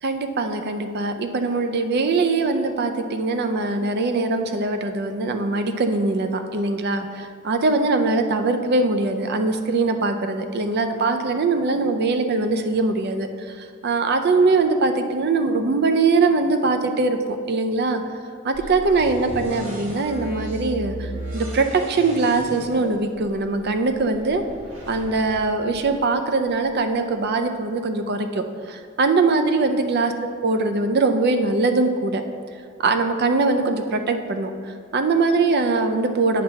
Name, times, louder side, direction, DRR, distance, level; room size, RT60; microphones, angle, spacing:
voice 1, 0.0-18.0 18.4-24.4 24.9-30.1 30.4-32.2 32.8-36.4, right 3 dB, 50° right, 7 dB, 0.5 m, -22 dB
sound 1, 18.5-26.4, right 1 dB, 85° right, 1.7 m, -36 dB
8.4 x 3.3 x 5.7 m, 2.3 s
head